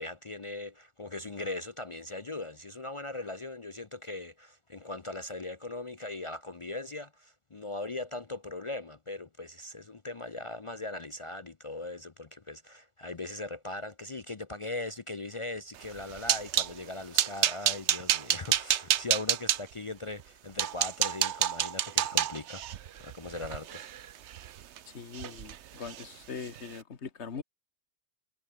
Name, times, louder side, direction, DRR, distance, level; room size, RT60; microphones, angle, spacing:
voice 1, 0.0-23.9, left 2 dB, 30° left, 0.7 m, -39 dB
sound 1, 15.8-16.7 17.2-19.6 20.2-20.3 20.6-24.8 25.1-25.6 25.8-26.0 26.4-26.6, right 10 dB, 80° right, 1.0 m, -29 dB
voice 2, 24.8-27.4, left 6 dB, 75° left, 1.8 m, -41 dB
omnidirectional pair, 1.2 m